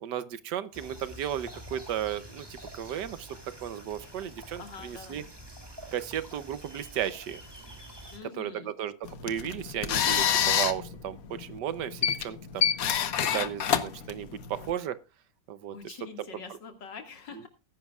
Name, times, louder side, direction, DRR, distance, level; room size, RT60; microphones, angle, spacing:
voice 1, 0.0-5.2 5.9-7.4 8.4-12.6 13.2-15.0 15.5-15.9, right 10 dB, 70° right, 15 dB, 1.4 m, -35 dB
sound 1, 0.7-8.2, equal, 15° right, 2.6 m, -47 dB
voice 2, 4.6-5.3 8.1-8.7 15.7-17.5, left 6 dB, 75° left, 6 dB, 2.7 m, -45 dB
sound 2, 9.1-14.7, left 8 dB, 60° left, 1.2 m, -28 dB
19.5 x 10.5 x 2.4 m, 0.29 s
omnidirectional pair, 2.0 m